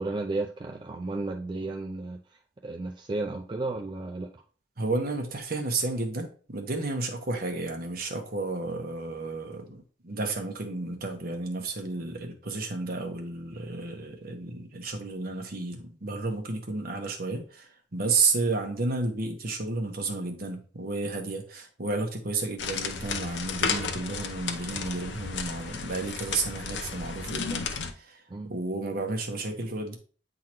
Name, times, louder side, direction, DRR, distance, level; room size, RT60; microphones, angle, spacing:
voice 1, 0.0-4.4 28.3-28.5, right 2 dB, 25° right, 2 dB, 0.4 m, -33 dB
voice 2, 4.8-30.0, right 3 dB, 55° right, 2 dB, 1.2 m, -32 dB
sound 1, 22.6-27.9, left 5 dB, 75° left, 0.7 m, -33 dB
8.6 x 3.8 x 3.0 m, 0.41 s
head